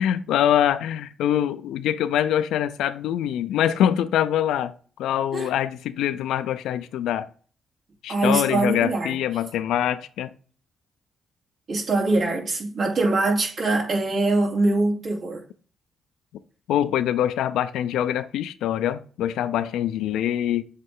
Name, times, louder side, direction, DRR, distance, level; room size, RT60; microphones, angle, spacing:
voice 1, 0.0-4.7 5.0-7.3 8.0-10.3 16.7-20.6, left 10 dB, 90° left, 0.4 m, -24 dB
voice 2, 8.1-9.2 11.7-15.4, right 2 dB, 60° right, 2.8 m, -23 dB
8.0 x 3.1 x 3.7 m
cardioid pair, 80°, 0 cm